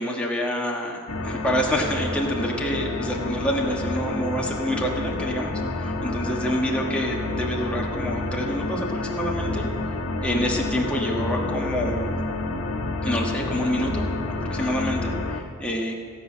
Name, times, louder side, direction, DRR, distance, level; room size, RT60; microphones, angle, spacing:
voice 1, 0.0-9.7 10.2-12.1 13.0-15.9, equal, 5° left, -2 dB, 1.3 m, -27 dB
sound 1, 1.1-15.4, left 2 dB, 90° left, 1.1 m, -29 dB
15.5 x 5.6 x 8.5 m, 2.2 s
head